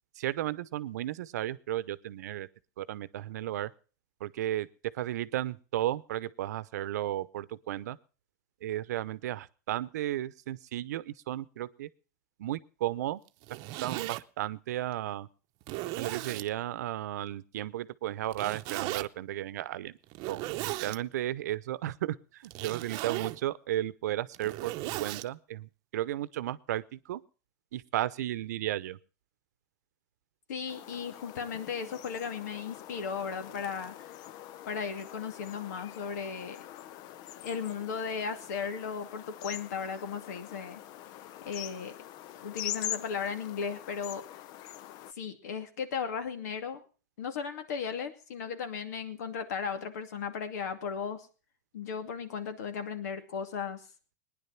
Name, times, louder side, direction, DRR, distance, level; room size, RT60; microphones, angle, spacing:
voice 1, 0.2-2.5 2.8-3.7 4.2-4.7 4.9-8.0 8.6-11.9 12.4-13.2 13.8-15.3 16.0-20.0 20.3-20.4 20.8-27.2 27.7-29.0, right 13 dB, 80° right, 18 dB, 0.8 m, -34 dB
Zipper (clothing), 13.3-14.2 14.9-15.0 15.6-16.5 18.3-19.1 20.1-21.0 22.4-23.4 24.2-25.3, right 18 dB, 50° right, 0.8 m, -36 dB
voice 2, 30.5-34.1 34.7-36.6 37.4-40.8 41.5-41.9 42.4-44.2 45.2-46.8 47.2-51.3 51.7-53.8, left 6 dB, 80° left, 8 dB, 2.5 m, -36 dB
sound 1, 30.7-45.1, left 12 dB, 50° left, 0.7 m, -44 dB
19.5 x 10.5 x 5.9 m, 0.38 s
supercardioid pair, 120°, 9 cm